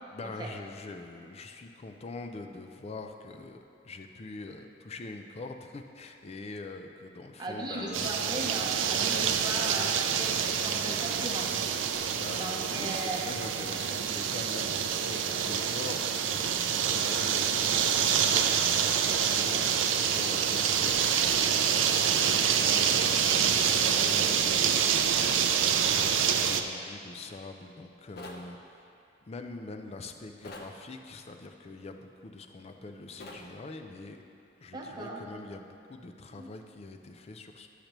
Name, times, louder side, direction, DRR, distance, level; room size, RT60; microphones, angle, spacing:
voice 1, 0.1-3.6 3.8-8.2 11.9-24.9 25.2-28.8 29.2-34.2 34.6-37.7, left 3 dB, 35° left, 6 dB, 0.4 m, -44 dB
voice 2, 7.4-11.5 12.4-13.2 34.7-35.2 36.3-36.5, right 1 dB, 25° right, -2 dB, 0.8 m, -37 dB
sound 1, 7.9-26.6, right 8 dB, 80° right, 0.4 m, -27 dB
sound 2, 28.2-28.5 30.4-30.7 33.2-33.5, left 2 dB, 55° left, 0.7 m, -44 dB
10.5 x 6.6 x 3.0 m, 2.6 s
head